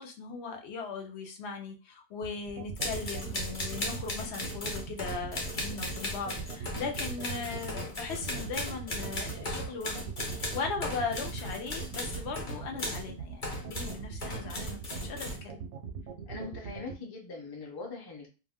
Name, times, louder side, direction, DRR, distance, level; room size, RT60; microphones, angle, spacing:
voice 1, 0.0-15.6, left 5 dB, 80° left, 4 dB, 0.9 m, -38 dB
sound 1, 2.2-16.9, right 7 dB, 85° right, 0.9 m, -41 dB
sound 2, 2.7-13.1 13.4-15.4, left 1 dB, 50° left, 1.0 m, -37 dB
voice 2, 16.3-18.3, left 3 dB, 25° left, 0 dB, 0.5 m, -41 dB
2.4 x 2.2 x 3.4 m, 0.31 s
omnidirectional pair, 1.1 m